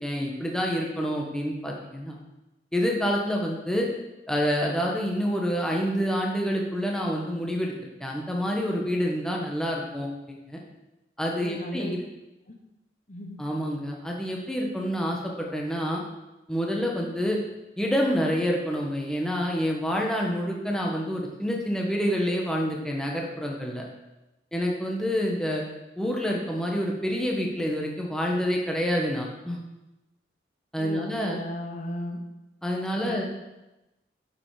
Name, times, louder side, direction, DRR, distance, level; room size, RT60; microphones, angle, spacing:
voice 1, 0.0-2.2 2.7-3.9 4.3-10.6 11.2-12.0 13.4-16.0 16.5-17.4 17.8-23.8 24.5-25.6 26.0-29.6 30.7-31.4 32.6-33.2, equal, 5° left, -1 dB, 1.3 m, -27 dB
voice 2, 11.4-11.9 12.5-12.6 13.1-13.4 30.8-32.2 32.9-33.2, left 1 dB, 40° left, 2 dB, 1.0 m, -36 dB
9.7 x 7.0 x 4.9 m, 1.0 s
head